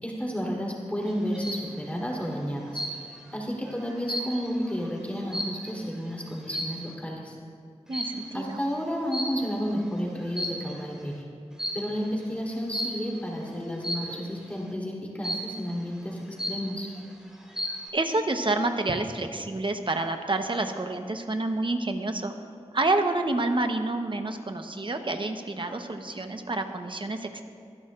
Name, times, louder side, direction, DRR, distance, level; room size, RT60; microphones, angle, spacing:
voice 1, 0.0-2.8 3.3-7.3 8.3-11.3 11.7-16.2 16.5-16.9, equal, 10° left, -3 dB, 3.3 m, -31 dB
sound 1, 1.1-1.7 2.7-3.3 3.7-5.9 6.5-6.9 7.9-8.3 9.1-9.7 10.2-10.9 11.6-12.0 12.7-13.1 13.8-14.3 15.2-15.7 16.1-16.2 16.4-17.0 17.4-17.9, equal, 5° right, 2.4 m, -33 dB
voice 2, 7.9-8.6 17.9-22.3 22.7-27.4, right 2 dB, 45° right, 6 dB, 1.0 m, -28 dB
sound 2, 9.5-10.7 12.2-12.3 13.0-14.4, left 1 dB, 40° left, 3.8 m, -45 dB
24.0 x 11.0 x 2.5 m, 2.2 s
wide cardioid pair, 60°, 12 cm